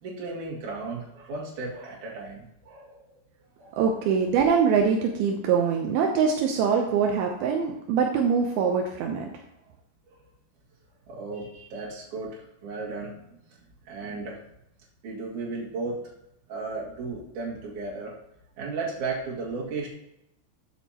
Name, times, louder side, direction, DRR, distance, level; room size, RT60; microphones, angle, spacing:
voice 1, 0.0-3.0 3.6-3.8 10.1-10.2 11.1-13.3 13.5-14.4 15.0-16.0 16.5-18.1 18.6-19.9, right 3 dB, 50° right, -3 dB, 2.8 m, -35 dB
voice 2, 3.7-9.3, right 6 dB, 80° right, 1 dB, 2.2 m, -23 dB
13.5 x 7.3 x 2.9 m, 0.82 s
omnidirectional pair, 5.3 m